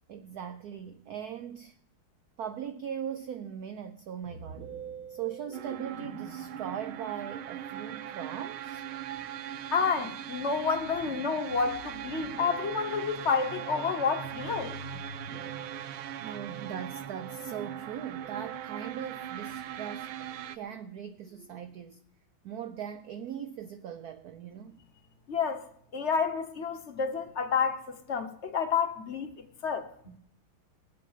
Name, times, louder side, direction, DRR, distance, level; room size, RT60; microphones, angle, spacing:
voice 1, 0.1-1.8 2.4-4.7 5.1-8.8 16.2-22.0 22.4-24.8, right 8 dB, 70° right, 0.9 m, -40 dB
Musical instrument, 4.2-21.8, right 4 dB, 50° right, 5.3 m, -49 dB
sound 1, 5.5-20.6, right 11 dB, 85° right, 1.6 m, -40 dB
voice 2, 9.7-14.8 25.3-25.6 25.9-29.9, left 6 dB, 45° left, 1.0 m, -30 dB
20.5 x 8.2 x 5.6 m
omnidirectional pair, 2.3 m